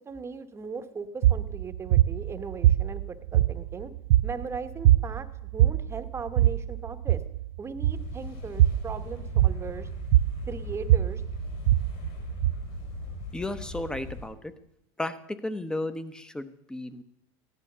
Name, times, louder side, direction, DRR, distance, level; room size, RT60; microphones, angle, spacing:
voice 1, 0.0-3.9 4.2-7.2 7.6-9.9 10.5-11.2, right 5 dB, 20° right, 10 dB, 1.0 m, -38 dB
sound 1, 1.2-13.2, right 14 dB, 90° right, 0.4 m, -24 dB
sound 2, 7.9-14.3, left 4 dB, 60° left, 5.4 m, -40 dB
voice 2, 13.3-14.5 15.0-17.0, left 1 dB, 5° left, 13 dB, 0.8 m, -34 dB
14.5 x 11.0 x 6.7 m, 0.76 s
supercardioid pair, 130°, 12 cm